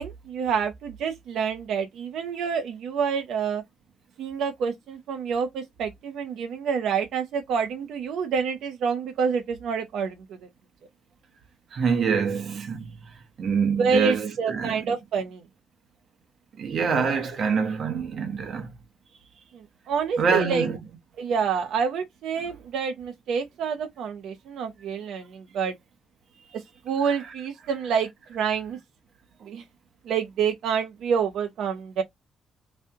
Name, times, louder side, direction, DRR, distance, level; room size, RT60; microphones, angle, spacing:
voice 1, 0.0-3.6 4.2-10.4 13.8-15.4 19.5-20.7 21.2-25.7 26.8-28.8 29.4-29.6 30.0-32.0, right 6 dB, 75° right, 0.9 m, -27 dB
voice 2, 11.7-13.0 13.4-14.7 16.6-18.7 20.2-20.8, right 5 dB, 55° right, 1.2 m, -25 dB
3.2 x 2.7 x 3.6 m
cardioid pair, 90°, 0 cm